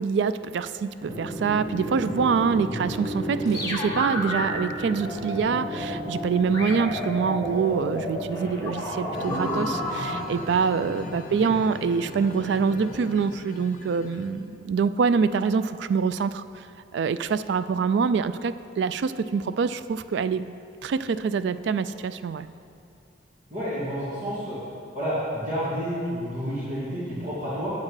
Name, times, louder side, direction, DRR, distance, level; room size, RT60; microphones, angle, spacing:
voice 1, 0.0-16.7 16.9-20.5 20.8-22.5, right 5 dB, 65° right, 13 dB, 0.3 m, -25 dB
Drum, 1.0-13.4, equal, 25° right, 2.1 m, -35 dB
sound 1, 3.4-4.4 5.0-6.2 6.5-10.1, left 1 dB, 20° left, 1.3 m, -31 dB
sound 2, 9.1-14.3, left 2 dB, 45° left, 0.6 m, -40 dB
voice 2, 23.5-24.6 24.9-27.7, equal, 40° right, -10 dB, 2.3 m, -30 dB
8.5 x 8.3 x 4.8 m, 2.5 s
head